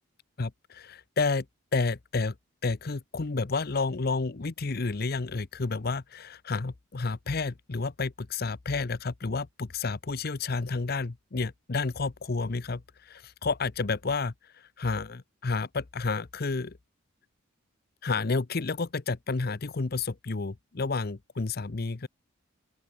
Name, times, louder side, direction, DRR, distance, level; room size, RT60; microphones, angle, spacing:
voice 1, 0.4-1.5 1.7-2.3 2.6-16.8 18.0-22.1, left 3 dB, 50° left, 0.7 m, -30 dB
open air
head